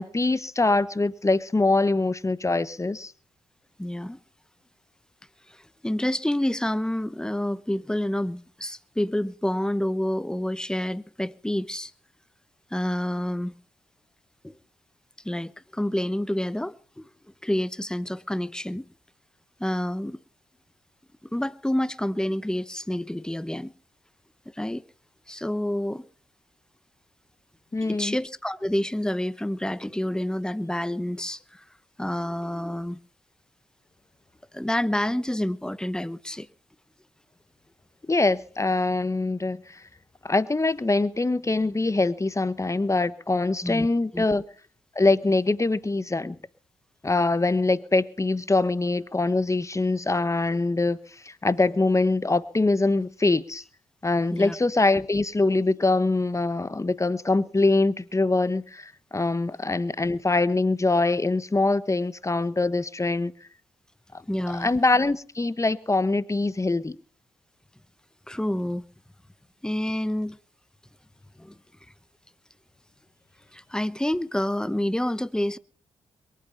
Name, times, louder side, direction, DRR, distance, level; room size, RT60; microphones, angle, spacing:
voice 1, 0.0-3.1 27.7-28.2 38.1-39.8 40.2-44.4 44.9-46.4 47.0-51.0 51.2-53.6 54.0-63.3 64.5-67.0, left 2 dB, 25° left, 1.2 m, -23 dB
voice 2, 3.8-4.2 5.5-11.9 12.7-13.6 14.4-14.5 15.2-17.1 17.4-18.9 19.6-20.2 21.3-23.7 24.5-24.8 25.3-26.0 27.8-31.6 32.0-33.0 34.5-36.5 43.6-43.9 44.1-44.2 54.3-54.6 64.3-64.7 68.3-68.9 69.6-70.4 71.4-71.6 73.5-75.6, left 1 dB, 5° left, 1.0 m, -28 dB
22.5 x 8.7 x 5.7 m
supercardioid pair, 50°, 13 cm